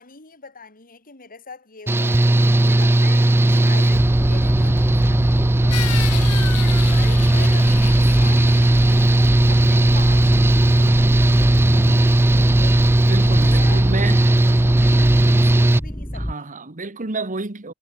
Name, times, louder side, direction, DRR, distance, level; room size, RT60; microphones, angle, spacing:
voice 1, 0.0-2.2 2.6-9.1 9.5-12.8 13.1-16.5, left 4 dB, 40° left, 5.3 m, -41 dB
Engine / Mechanical fan, 1.9-15.8, right 1 dB, 10° right, 0.3 m, -16 dB
sound 1, 3.9-16.3, equal, 10° left, 2.8 m, -26 dB
sound 2, 5.7-10.4, left 12 dB, 90° left, 1.2 m, -34 dB
voice 2, 13.1-14.2 16.1-17.7, right 3 dB, 35° right, 1.5 m, -29 dB
head